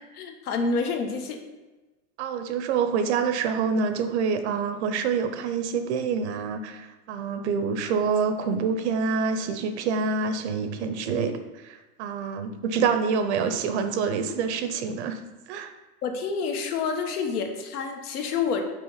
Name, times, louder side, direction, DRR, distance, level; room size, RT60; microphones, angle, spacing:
voice 1, 0.1-1.4 16.0-18.7, left 5 dB, 80° left, 4 dB, 1.3 m, -28 dB
voice 2, 2.2-15.2 15.5-15.7, right 5 dB, 50° right, 9 dB, 0.7 m, -26 dB
6.0 x 4.4 x 5.6 m, 1.2 s
supercardioid pair, 160°, 45 cm